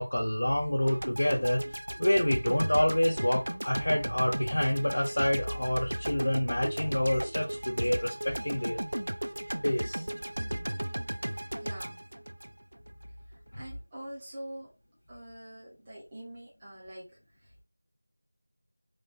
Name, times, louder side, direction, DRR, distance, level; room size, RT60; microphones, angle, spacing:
voice 1, 0.0-1.6 2.0-8.8 9.6-10.0 13.5-13.6, left 1 dB, 70° left, 0.8 m, -27 dB
sound 1, 0.9-13.1, right 1 dB, 75° right, 0.4 m, -36 dB
voice 2, 11.5-12.0 13.6-14.7 15.1-17.1, right 1 dB, 15° right, 0.9 m, -44 dB
3.1 x 2.2 x 4.2 m
figure-of-eight pair, 175°, 0 cm